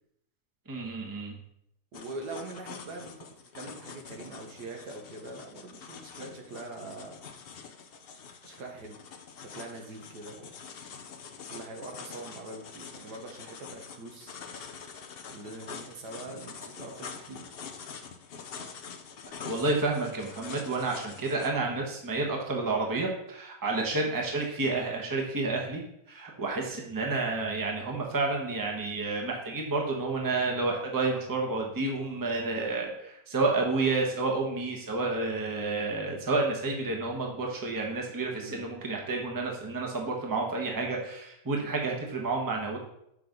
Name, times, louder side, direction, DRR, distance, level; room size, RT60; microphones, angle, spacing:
voice 1, 0.7-1.3 19.4-25.8 26.1-42.8, right 3 dB, 15° right, 0 dB, 1.0 m, -30 dB
sound 1, 1.9-21.5, left 6 dB, 70° left, 0.5 m, -45 dB
voice 2, 1.9-7.2 8.4-9.0 9.4-10.5 11.5-14.4 15.3-17.5 38.3-38.7, right 2 dB, 70° right, 2 dB, 1.7 m, -43 dB
6.3 x 5.9 x 3.9 m, 0.77 s
omnidirectional pair, 1.8 m